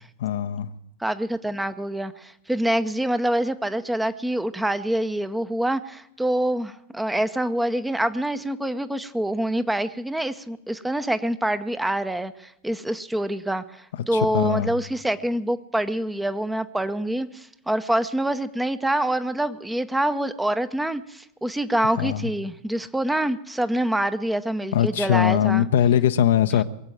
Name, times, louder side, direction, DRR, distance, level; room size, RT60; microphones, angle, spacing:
voice 1, 0.2-0.7 14.1-14.7 22.0-22.3 24.7-26.6, left 10 dB, 60° left, 0.7 m, -21 dB
voice 2, 1.0-25.7, right 1 dB, 5° right, 0.7 m, -26 dB
22.0 x 8.0 x 7.7 m
figure-of-eight pair, 90°, 0 cm